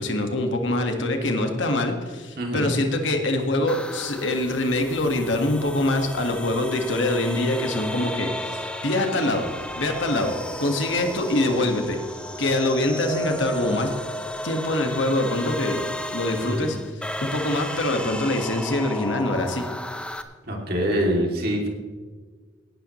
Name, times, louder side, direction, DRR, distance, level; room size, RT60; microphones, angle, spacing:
voice 1, 0.0-9.4 9.8-10.3 10.6-12.0 12.4-13.9 14.4-15.8 16.1-19.6, left 1 dB, 65° left, 4 dB, 1.7 m, -24 dB
voice 2, 2.4-2.7 16.4-16.7 20.4-21.7, equal, 50° right, 0 dB, 2.8 m, -25 dB
sound 1, 3.7-20.2, equal, 5° left, 0.6 m, -34 dB
18.0 x 12.0 x 3.2 m, 1.4 s
head